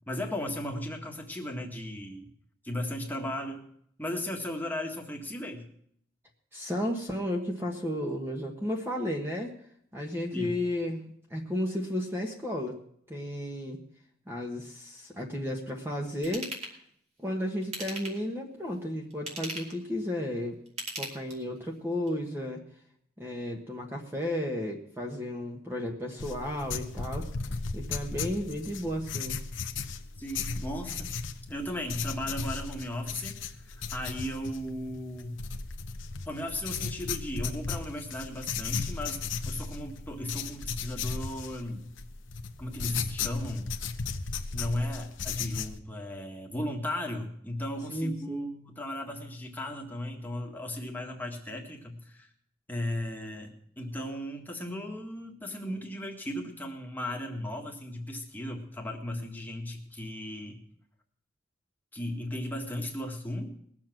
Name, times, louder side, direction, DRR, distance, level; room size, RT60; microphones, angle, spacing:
voice 1, 0.1-2.3 2.6-3.6 4.0-5.6 10.3-10.6 30.2-31.1 31.5-35.4 36.2-41.9 42.6-43.7 44.5-52.3 52.7-60.6 61.9-63.5, left 1 dB, 10° left, 1 dB, 1.7 m, -36 dB
voice 2, 6.5-9.6 9.9-12.8 13.1-13.8 14.3-16.5 17.2-20.6 21.0-22.6 23.2-27.3 27.7-29.4 47.9-48.4, left 1 dB, 10° right, 0 dB, 1.4 m, -33 dB
Ratchet pawl / Tools, 16.2-16.7 17.6-18.3 19.1-19.8 20.7-21.6 22.1-22.2, right 1 dB, 35° right, 2.5 m, -38 dB
sound 1, 26.2-45.8, left 5 dB, 70° left, 0.9 m, -36 dB
20.0 x 7.5 x 6.1 m, 0.67 s
head